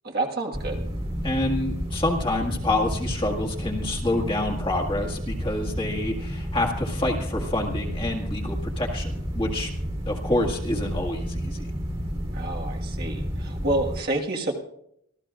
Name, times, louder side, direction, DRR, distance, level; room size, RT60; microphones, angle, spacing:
voice 1, 0.0-0.8 12.3-14.5, right 2 dB, 45° right, 0 dB, 1.6 m, -28 dB
sound 1, 0.5-14.0, equal, 25° right, 2.0 m, -31 dB
voice 2, 1.2-9.7 10.1-11.7, left 2 dB, 25° left, 0 dB, 1.8 m, -27 dB
25.5 x 14.5 x 2.5 m, 0.73 s
head